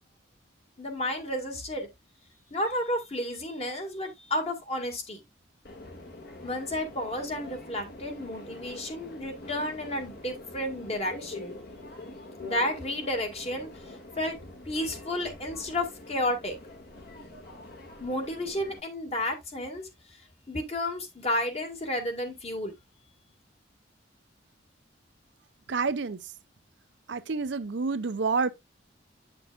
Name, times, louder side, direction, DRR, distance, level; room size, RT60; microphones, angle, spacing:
voice 1, 0.8-1.9 2.5-5.2 6.4-11.6 12.4-13.7 14.2-14.4 14.6-16.6 18.0-19.9 20.5-22.7, left 1 dB, 30° left, 1.8 m, -32 dB
Subway metro underground, 5.6-18.8, left 2 dB, 50° left, 1.9 m, -45 dB
voice 2, 25.7-26.2 27.1-28.5, right 4 dB, 60° right, 0.5 m, -28 dB
8.9 x 6.0 x 2.4 m
head